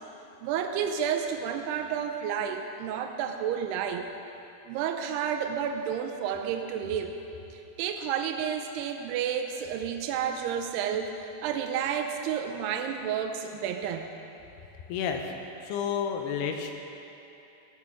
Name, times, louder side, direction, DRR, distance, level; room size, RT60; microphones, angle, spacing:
voice 1, 0.4-4.1 4.7-7.2 7.5-14.1, right 8 dB, 85° right, 4 dB, 2.7 m, -31 dB
voice 2, 14.9-15.2 15.6-16.8, left 7 dB, 85° left, 4 dB, 3.0 m, -30 dB
15.0 x 8.5 x 6.0 m, 2.9 s
omnidirectional pair, 4.7 m